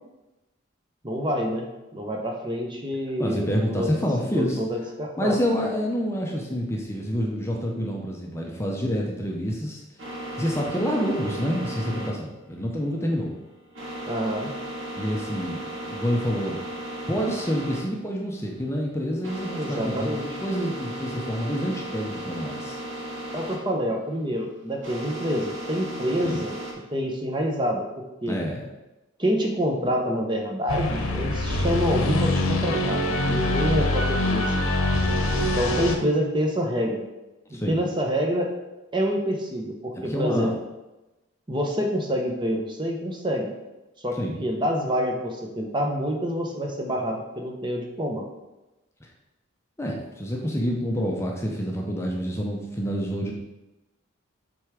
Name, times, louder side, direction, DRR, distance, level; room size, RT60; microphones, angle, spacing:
voice 1, 1.0-3.9 4.3-5.4 14.1-14.5 19.6-20.3 23.3-26.5 26.9-28.4 29.2-34.5 35.6-37.0 37.5-38.5 38.9-40.5 41.5-43.5 44.0-48.2, equal, 20° right, 1 dB, 0.8 m, -27 dB
voice 2, 3.2-4.6 5.2-9.8 10.4-13.3 15.0-16.6 17.1-22.8 26.2-26.4 28.3-28.6 37.5-37.8 40.0-40.6 44.2-44.4 49.8-53.3, equal, 15° left, -1 dB, 0.7 m, -28 dB
sound 1, 10.0-26.7, right 1 dB, 65° right, 1.6 m, -36 dB
sound 2, 30.7-36.0, left 1 dB, 85° left, 1.0 m, -24 dB
7.7 x 3.5 x 4.9 m, 1.0 s
head